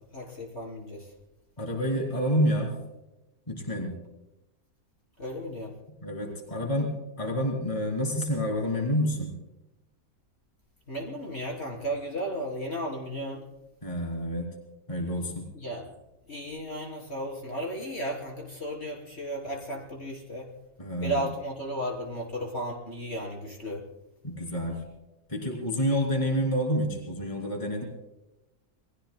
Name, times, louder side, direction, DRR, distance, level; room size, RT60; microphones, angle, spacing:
voice 1, 0.1-1.0 5.2-5.7 10.9-13.4 15.5-15.9 16.3-20.5 21.0-23.8, right 1 dB, 45° left, -1 dB, 3.8 m, -34 dB
voice 2, 1.6-2.7 3.5-4.0 6.0-9.3 13.8-14.5 14.9-15.5 20.8-21.3 24.2-24.8 25.3-27.9, equal, 20° left, 0 dB, 3.2 m, -28 dB
28.5 x 20.5 x 2.2 m, 0.96 s
omnidirectional pair, 1.6 m